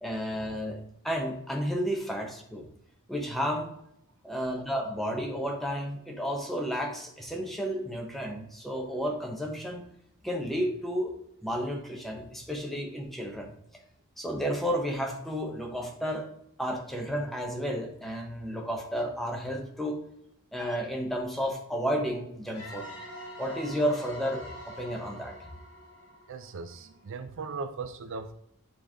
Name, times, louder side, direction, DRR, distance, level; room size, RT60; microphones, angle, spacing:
voice 1, 0.0-2.7 3.1-3.7 4.2-9.9 10.2-11.1 11.4-13.5 14.2-16.3 16.6-20.0 20.5-22.9 23.4-25.4, equal, ahead, 1.0 m, -32 dB
sound 1, 22.5-27.1, left 1 dB, 60° left, 2.6 m, -45 dB
voice 2, 26.3-28.3, right 4 dB, 60° right, 0.4 m, -38 dB
9.9 x 3.3 x 3.6 m
head